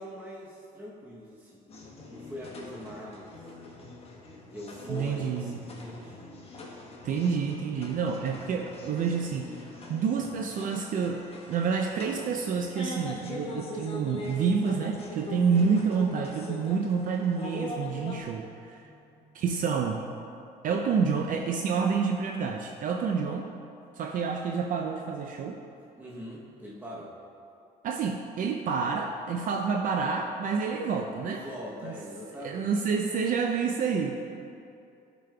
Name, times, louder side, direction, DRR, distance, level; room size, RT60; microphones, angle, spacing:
voice 1, 0.0-1.7 2.1-3.4 4.5-6.2 18.8-19.2 26.0-27.1 31.2-32.7, left 1 dB, 10° right, -5 dB, 0.8 m, -42 dB
sound 1, 1.7-18.2, left 2 dB, 35° left, 1.1 m, -42 dB
voice 2, 4.9-5.6 7.0-18.9 19.3-20.1 20.6-23.5 24.0-25.6 27.8-31.4 31.8-31.9 32.4-34.2, right 5 dB, 55° right, 3 dB, 0.4 m, -28 dB
11.0 x 5.1 x 2.3 m, 2.6 s
cardioid pair, 110°, 17 cm